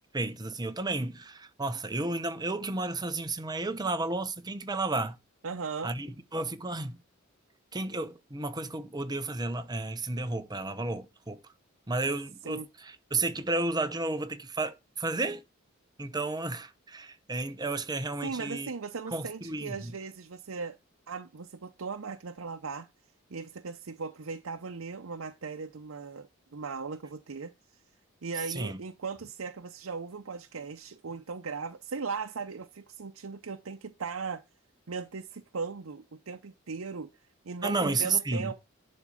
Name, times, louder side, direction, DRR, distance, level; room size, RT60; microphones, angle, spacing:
voice 1, 0.1-5.2 5.8-7.0 7.7-11.4 11.9-15.4 16.0-18.7 19.1-19.9 28.5-28.8 37.6-38.5, right 2 dB, 20° right, 0.9 m, -32 dB
voice 2, 5.4-5.9 12.5-12.7 18.2-20.8 21.1-22.9 23.3-27.5 28.2-34.4 34.9-37.1 37.4-38.5, right 5 dB, 90° right, 0.7 m, -38 dB
11.0 x 4.3 x 5.0 m
head